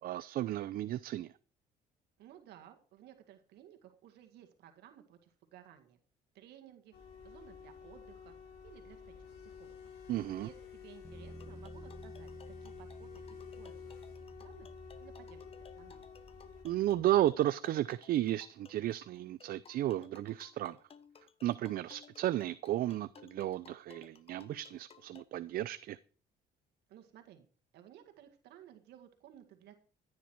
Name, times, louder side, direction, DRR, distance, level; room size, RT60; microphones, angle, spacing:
voice 1, 0.0-1.3 10.1-10.5 16.6-20.8 21.4-26.0, right 13 dB, 60° right, 0.5 m, -33 dB
voice 2, 2.2-6.0 6.3-6.9 7.2-8.4 8.6-9.9 10.4-14.7 15.0-15.4 15.7-16.1 26.9-27.5 27.7-29.7, right 11 dB, 75° right, 1.9 m, -57 dB
sound 1, 6.9-16.6, left 7 dB, 70° left, 4.7 m, -51 dB
Bass guitar, 11.0-17.3, right 3 dB, 5° right, 2.2 m, -53 dB
sound 2, 11.4-25.2, left 6 dB, 35° left, 1.1 m, -59 dB
14.5 x 9.6 x 4.6 m
cardioid pair, 110°, 17 cm